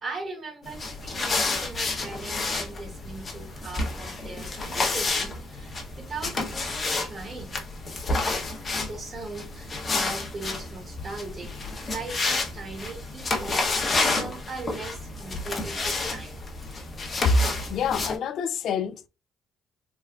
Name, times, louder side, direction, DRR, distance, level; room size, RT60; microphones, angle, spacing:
voice 1, 0.0-7.5 8.8-11.5 11.9-16.4, right 3 dB, 40° right, 1.1 m, -39 dB
sound 1, 0.7-18.2, left 3 dB, 40° left, 0.9 m, -30 dB
voice 2, 17.7-19.1, left 4 dB, 65° left, 0.3 m, -25 dB
3.4 x 2.2 x 2.3 m
supercardioid pair, 75°, 0 cm